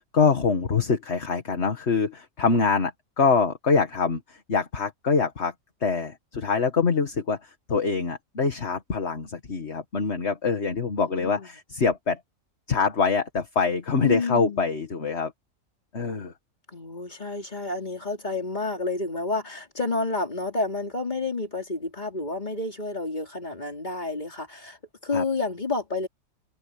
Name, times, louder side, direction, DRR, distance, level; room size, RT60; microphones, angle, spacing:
voice 1, 0.0-5.5 5.8-12.2 12.7-15.3 15.9-16.3 25.1-25.2, left 5 dB, 50° left, 2.0 m, -25 dB
voice 2, 11.0-11.5 14.0-14.7 16.7-26.1, left 3 dB, 30° left, 3.8 m, -30 dB
omnidirectional pair, 1.5 m